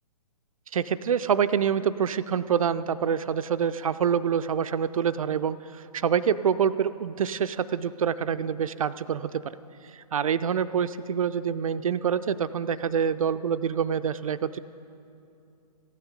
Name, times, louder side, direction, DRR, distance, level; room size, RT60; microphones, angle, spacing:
voice 1, 0.7-9.6 10.1-14.6, right 7 dB, 60° right, 13 dB, 0.4 m, -26 dB
15.0 x 9.5 x 5.1 m, 2.7 s
figure-of-eight pair, 135°, 20 cm